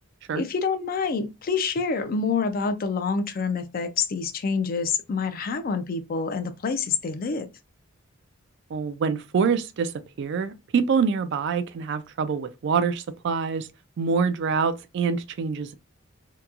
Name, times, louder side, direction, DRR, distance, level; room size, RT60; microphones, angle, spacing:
voice 1, 0.3-7.5, left 5 dB, 45° left, 0.4 m, -27 dB
voice 2, 8.7-9.9 10.2-13.7 14.0-15.8, right 5 dB, 55° right, 0.3 m, -25 dB
2.8 x 2.2 x 2.4 m
head